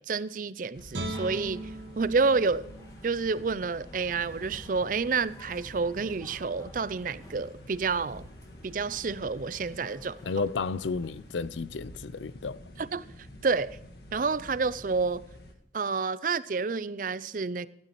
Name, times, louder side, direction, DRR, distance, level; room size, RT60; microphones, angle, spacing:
voice 1, 0.0-2.7 3.0-8.3 8.6-10.2 12.8-13.1 13.4-13.8 14.1-15.2 15.7-17.7, right 4 dB, 50° right, 0.5 m, -29 dB
sound 1, 0.7-15.5, equal, 60° left, 1.7 m, -48 dB
Guitar, 0.9-4.1 4.5-4.6, right 1 dB, 90° right, 2.6 m, -40 dB
sound 2, 1.1-11.3, equal, 20° left, 1.8 m, -53 dB
voice 2, 10.2-12.6, left 4 dB, 85° left, 0.5 m, -32 dB
16.0 x 11.5 x 3.0 m
head